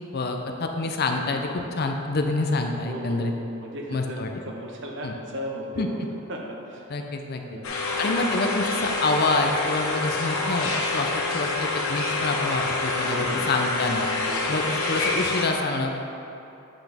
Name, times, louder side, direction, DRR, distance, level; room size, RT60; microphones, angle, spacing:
voice 1, 0.1-3.3 3.9-4.3 5.0-5.2 5.8-5.9 6.9-7.6 8.0-14.1 14.5-16.0, left 3 dB, 50° left, 4 dB, 0.5 m, -27 dB
voice 2, 1.4-1.7 2.8-3.3 3.6-6.0 6.3-6.9 7.4-7.7 13.0-13.6 14.3-14.6, equal, 55° right, 0 dB, 1.0 m, -36 dB
sound 1, 7.6-15.5, left 3 dB, 70° left, 1.0 m, -27 dB
8.3 x 5.9 x 3.4 m, 2.8 s
head